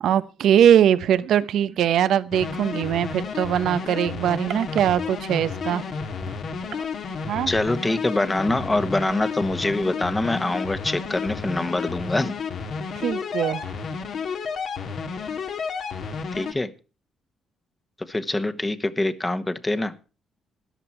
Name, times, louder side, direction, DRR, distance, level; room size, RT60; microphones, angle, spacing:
voice 1, 0.0-5.8 7.3-7.5 13.0-13.6, right 10 dB, 75° right, 14 dB, 0.9 m, -21 dB
sound 1, 2.3-16.5, left 5 dB, 65° left, 2.0 m, -31 dB
voice 2, 7.5-12.3 16.3-16.7 18.0-19.9, left 2 dB, 15° left, 12 dB, 1.3 m, -25 dB
13.5 x 11.0 x 4.4 m, 0.33 s
cardioid pair, 90°, 0 cm